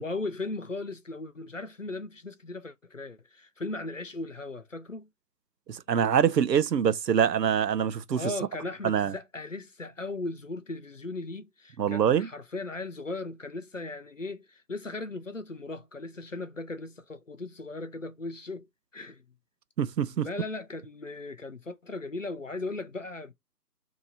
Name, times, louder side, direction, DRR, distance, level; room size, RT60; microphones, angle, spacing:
voice 1, 0.0-5.1 8.2-18.7 18.9-19.2 20.1-23.3, left 2 dB, 55° left, 0.5 m, -37 dB
voice 2, 5.7-8.3 8.8-9.1 11.8-12.3 19.8-20.3, right 8 dB, 80° right, 0.7 m, -24 dB
2.9 x 2.7 x 3.8 m
figure-of-eight pair, 180°, 48 cm